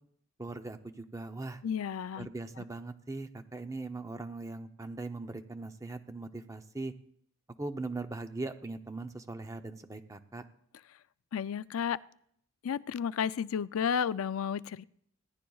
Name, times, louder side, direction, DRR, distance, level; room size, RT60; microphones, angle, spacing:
voice 1, 0.4-1.6 2.2-6.9 7.6-10.5, right 3 dB, 15° right, 8 dB, 0.6 m, -40 dB
voice 2, 1.6-2.3 2.6-2.7 11.3-12.0 12.6-14.8, left 7 dB, 75° left, 17 dB, 0.4 m, -32 dB
20.5 x 15.5 x 2.4 m, 0.69 s
head